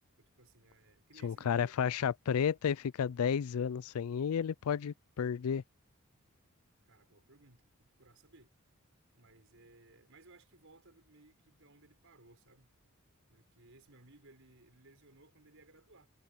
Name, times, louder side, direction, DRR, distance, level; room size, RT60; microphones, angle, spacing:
voice 1, 0.2-1.9 6.9-8.5 9.1-12.7 13.3-16.1, right 2 dB, 65° right, 6.5 m, -61 dB
voice 2, 1.2-5.6, left 7 dB, 80° left, 0.4 m, -32 dB
head